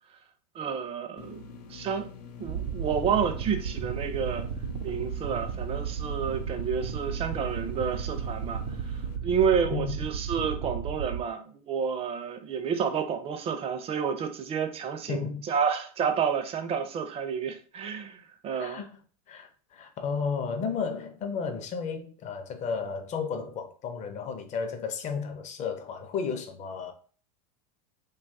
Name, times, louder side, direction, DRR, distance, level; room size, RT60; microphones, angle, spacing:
voice 1, 0.5-2.1 2.4-4.4 4.8-18.8, right 7 dB, 30° right, 0.5 m, -30 dB
sound 1, 1.2-9.2, left 6 dB, 85° left, 0.5 m, -46 dB
sound 2, 2.5-11.2, right 7 dB, 80° right, 0.5 m, -34 dB
voice 2, 15.1-15.5 18.5-18.9 19.3-26.9, left 5 dB, 35° left, 0.5 m, -33 dB
2.8 x 2.3 x 2.6 m
supercardioid pair, 110°, 20 cm